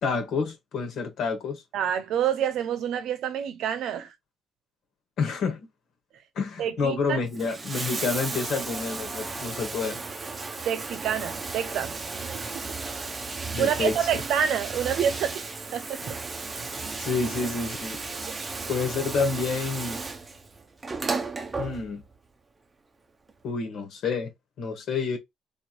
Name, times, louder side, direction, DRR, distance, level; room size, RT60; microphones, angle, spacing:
voice 1, 0.0-1.6 5.2-5.7 6.3-10.0 13.5-14.2 17.0-18.0 18.7-20.0 21.6-22.0 23.4-24.3 24.6-25.2, left 4 dB, 65° left, 1.8 m, -29 dB
voice 2, 1.7-4.1 6.6-7.2 10.6-12.8 13.6-15.5 15.7-16.2 18.1-18.3 18.6-18.7, right 9 dB, 75° right, 0.9 m, -28 dB
Bathtub (filling or washing), 7.2-22.2 23.3-23.4, right 3 dB, 25° right, 0.7 m, -34 dB
3.7 x 3.1 x 4.6 m
cardioid pair, 130°, 0 cm